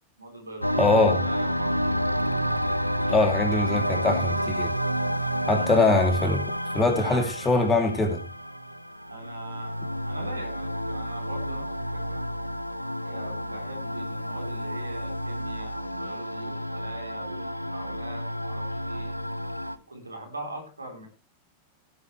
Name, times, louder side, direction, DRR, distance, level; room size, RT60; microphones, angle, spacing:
voice 1, 0.2-2.5 5.4-6.4 6.9-7.7 9.1-9.8 10.0-12.2 13.0-19.2 19.9-21.1, right 2 dB, 80° right, 3 dB, 3.8 m, -41 dB
sound 1, 0.6-19.8, equal, 90° left, 0.7 m, -30 dB
voice 2, 0.8-1.2 3.1-4.7 5.5-6.4 6.7-8.2, left 3 dB, 15° left, 5 dB, 3.1 m, -22 dB
17.0 x 9.4 x 3.3 m, 0.31 s
figure-of-eight pair, 90°, 0 cm